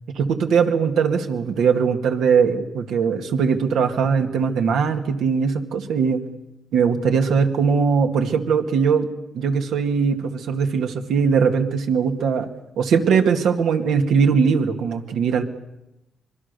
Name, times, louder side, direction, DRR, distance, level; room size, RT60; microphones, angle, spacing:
voice 1, 0.2-6.2 6.7-9.1 9.3-12.5 12.8-15.4, right 6 dB, 85° right, 5 dB, 2.2 m, -20 dB
25.0 x 23.0 x 6.9 m, 0.92 s
cardioid pair, 115°, 0 cm